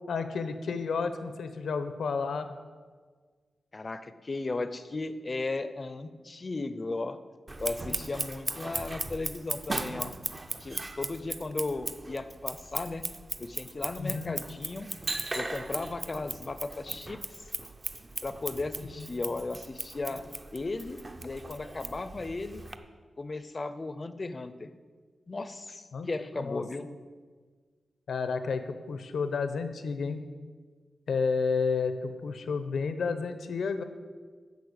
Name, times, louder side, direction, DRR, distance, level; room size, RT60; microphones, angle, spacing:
voice 1, 0.1-2.5 14.0-14.4 19.0-19.1 25.9-26.1 26.4-26.6 28.1-30.2 31.1-33.8, left 5 dB, 85° left, 9 dB, 0.9 m, -31 dB
voice 2, 3.7-7.2 7.6-10.1 10.6-13.0 13.4-14.9 15.3-17.4 18.2-20.3 20.5-22.6 23.2-24.7 25.3-26.9, left 3 dB, 30° left, 12 dB, 0.6 m, -36 dB
Scissors, 7.5-22.8, right 2 dB, 25° right, 0.6 m, -38 dB
10.5 x 6.8 x 8.2 m, 1.5 s
wide cardioid pair, 175°, 0 cm